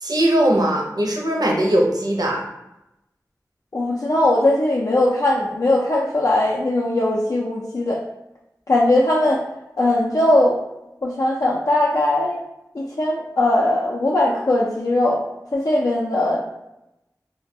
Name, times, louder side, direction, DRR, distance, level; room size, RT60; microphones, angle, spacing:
voice 1, 0.0-2.4, right 1 dB, 70° right, -1 dB, 0.5 m, -19 dB
voice 2, 3.7-8.0 8.7-9.4 9.8-10.6 11.0-12.4 12.7-15.2 15.5-16.4, left 1 dB, 55° left, -4 dB, 0.3 m, -19 dB
2.2 x 2.1 x 2.6 m, 0.90 s
wide cardioid pair, 45°, 7 cm